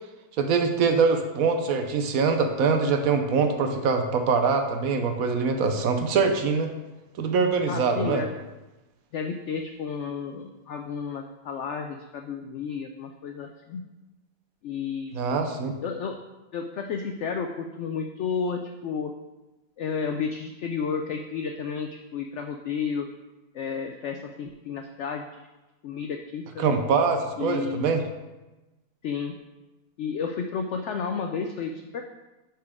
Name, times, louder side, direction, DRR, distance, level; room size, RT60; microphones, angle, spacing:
voice 1, 0.4-6.7 7.2-8.2 15.1-15.7 26.6-28.0, right 5 dB, 65° right, 5 dB, 1.0 m, -23 dB
voice 2, 7.7-8.3 9.1-13.8 14.6-15.4 15.8-16.2 16.5-19.1 19.8-23.1 23.5-25.5 25.8-26.6 27.4-27.9 29.0-29.3 30.0-32.0, left 6 dB, 80° left, 4 dB, 0.6 m, -32 dB
9.8 x 4.5 x 3.5 m, 1.1 s
omnidirectional pair, 1.8 m